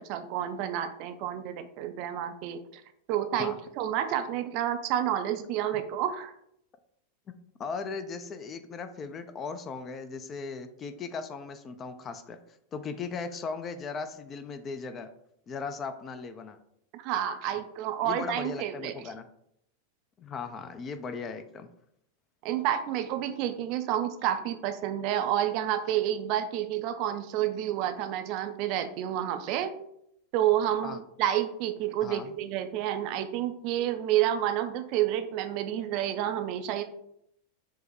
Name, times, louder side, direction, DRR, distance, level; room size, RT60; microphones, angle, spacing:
voice 1, 0.0-2.6 3.1-6.3 16.9-18.9 22.4-29.7 30.3-36.8, right 11 dB, 45° right, 8 dB, 0.4 m, -29 dB
voice 2, 7.6-12.4 12.7-15.1 15.5-16.6 18.0-19.3 20.2-21.7 30.8-31.0 32.0-32.3, left 5 dB, 25° left, 9 dB, 0.4 m, -37 dB
4.6 x 2.1 x 4.6 m, 0.73 s
figure-of-eight pair, 90°, 0 cm